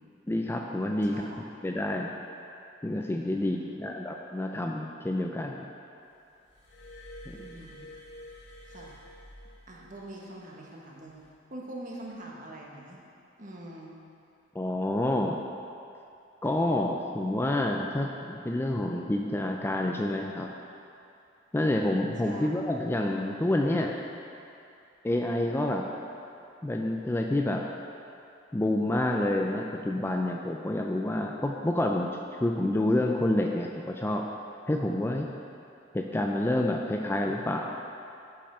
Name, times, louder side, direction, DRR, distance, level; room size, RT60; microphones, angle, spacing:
voice 1, 0.3-1.2 1.6-2.1 2.8-5.7 7.3-7.4 14.5-15.4 16.4-20.5 21.5-24.0 25.0-25.9 26.6-27.7 28.5-32.1 32.4-34.3 34.7-35.3 35.9-37.8, left 1 dB, 10° left, 1 dB, 0.4 m, -28 dB
voice 2, 1.0-1.4 3.4-3.8 7.4-7.8 8.7-9.0 9.7-11.2 11.5-13.0 13.4-13.9 22.2-22.5, right 1 dB, 45° right, -2 dB, 1.2 m, -44 dB
Glass, 6.5-10.1 11.1-11.3, left 1 dB, 85° left, 1.6 m, -48 dB
8.5 x 5.5 x 5.5 m, 2.6 s
head